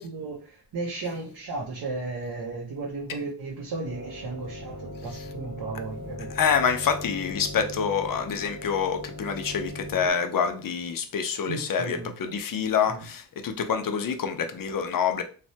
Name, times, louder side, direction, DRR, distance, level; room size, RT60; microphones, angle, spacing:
voice 1, 0.0-6.3 11.5-12.1 12.9-13.1, right 3 dB, 60° right, 0.7 m, -35 dB
sound 1, 3.8-10.1, left 1 dB, 30° left, 1.0 m, -39 dB
voice 2, 6.3-15.2, left 6 dB, 55° left, 0.5 m, -27 dB
3.2 x 2.1 x 2.7 m
wide cardioid pair, 110°, 42 cm